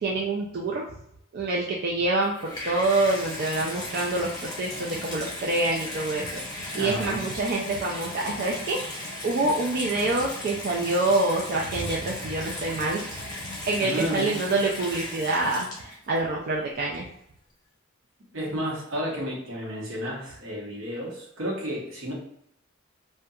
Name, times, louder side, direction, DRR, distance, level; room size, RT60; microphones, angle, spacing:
voice 1, 0.0-0.8 1.3-2.3 2.6-13.0 13.7-17.0, right 2 dB, 50° right, -2 dB, 0.3 m, -26 dB
Water tap faucet / Bathtub (filling or washing), 2.1-16.2 16.9-17.0, left 1 dB, 20° left, 0.6 m, -36 dB
voice 2, 6.8-7.2 13.8-14.4 18.3-22.1, equal, 75° right, -3 dB, 0.9 m, -32 dB
2.7 x 2.2 x 2.3 m, 0.74 s
head